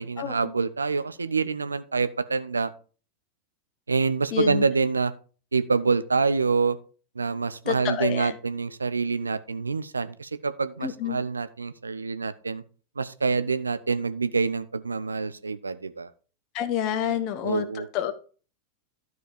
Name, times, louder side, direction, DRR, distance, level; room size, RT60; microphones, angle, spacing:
voice 1, 0.0-2.7 3.9-5.1 5.5-6.8 7.2-12.6 13.0-16.1 17.0-17.9, right 4 dB, 75° right, 13 dB, 0.6 m, -26 dB
voice 2, 4.3-4.7 7.7-8.4 10.8-11.2 16.5-18.1, left 9 dB, 40° left, 11 dB, 1.1 m, -28 dB
12.5 x 4.7 x 5.1 m, 0.39 s
figure-of-eight pair, 90°, 0 cm